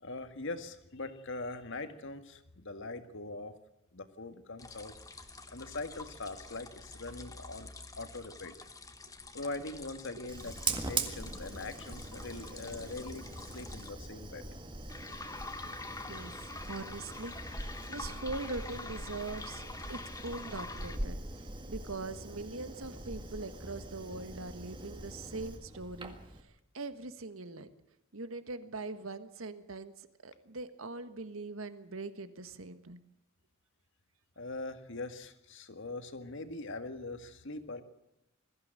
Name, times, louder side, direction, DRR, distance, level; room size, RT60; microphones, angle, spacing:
voice 1, 0.0-3.6 3.9-5.0 5.5-7.7 8.0-8.6 9.3-13.3 13.5-14.4 34.4-37.8, left 2 dB, 60° left, 9 dB, 1.9 m, -42 dB
sound 1, 4.6-13.9 14.9-21.0, left 3 dB, 15° left, 1.4 m, -47 dB
Fire, 10.3-26.4, right 3 dB, 25° right, 1.9 m, -42 dB
voice 2, 15.9-26.2 26.7-27.7 28.1-29.9 30.2-33.0, right 3 dB, 75° right, 11 dB, 1.6 m, -42 dB
21.5 x 15.0 x 9.0 m, 0.85 s
head